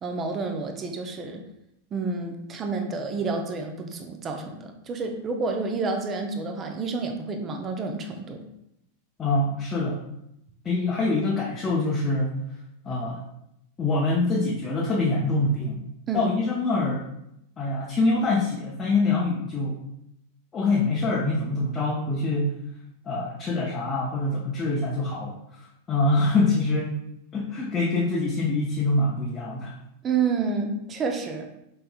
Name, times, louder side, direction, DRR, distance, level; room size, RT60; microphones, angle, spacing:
voice 1, 0.0-1.4 1.9-8.5 16.1-16.3 30.0-31.5, right 4 dB, 25° right, 4 dB, 0.6 m, -29 dB
voice 2, 9.2-10.0 10.6-12.4 12.8-13.2 13.8-15.8 16.1-17.1 17.6-19.8 20.5-22.6 23.1-25.6 25.9-27.0 27.3-29.8, left 2 dB, 20° left, -5 dB, 0.7 m, -25 dB
5.3 x 3.3 x 2.3 m, 0.80 s
figure-of-eight pair, 90°, 0 cm